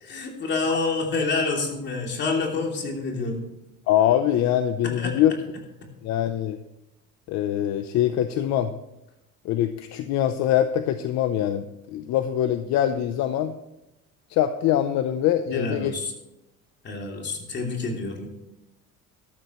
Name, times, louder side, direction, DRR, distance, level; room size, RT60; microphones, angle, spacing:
voice 1, 0.0-3.4 4.8-5.1 15.5-16.1 16.8-18.3, left 3 dB, 35° left, 1 dB, 3.0 m, -28 dB
voice 2, 3.9-5.3 6.0-6.6 7.3-8.7 9.4-13.6 14.3-15.9, left 11 dB, 65° left, 9 dB, 0.7 m, -23 dB
13.5 x 12.5 x 3.1 m, 0.91 s
cardioid pair, 140°, 30 cm